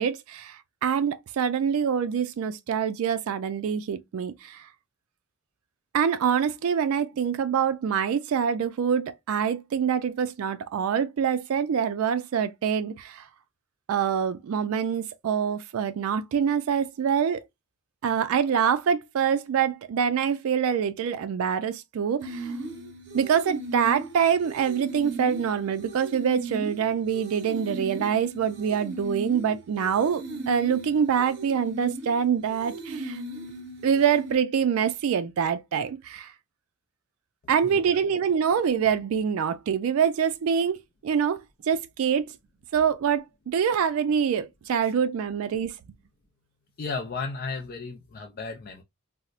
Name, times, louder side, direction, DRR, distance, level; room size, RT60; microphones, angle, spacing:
voice 1, 0.0-4.7 5.9-13.3 13.9-17.4 18.0-22.5 23.1-33.2 33.8-36.3 37.5-40.8 41.0-41.4 41.7-42.3 42.7-45.7, right 7 dB, 70° right, 0.3 m, -25 dB
sound 1, 22.2-34.3, right 2 dB, 55° right, 0.9 m, -37 dB
voice 2, 46.8-48.8, left 4 dB, 45° left, 0.4 m, -34 dB
4.1 x 2.0 x 2.4 m
head